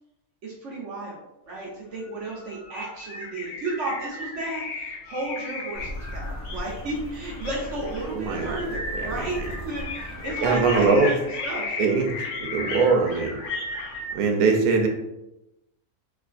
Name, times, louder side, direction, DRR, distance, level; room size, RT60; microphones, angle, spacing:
voice 1, 0.4-11.8 14.2-14.6, right 2 dB, 55° right, -4 dB, 1.1 m, -33 dB
sound 1, 1.6-1.7 2.0-14.1, left 2 dB, 85° left, 1.1 m, -35 dB
sound 2, 5.7-11.0, left 1 dB, 20° right, 0.5 m, -38 dB
voice 2, 8.1-8.6 9.0-9.3 10.4-11.1 11.8-12.1 12.4-13.4 14.1-14.9, right 4 dB, 80° right, 3 dB, 1.1 m, -21 dB
3.5 x 3.2 x 2.4 m, 0.91 s
omnidirectional pair, 1.6 m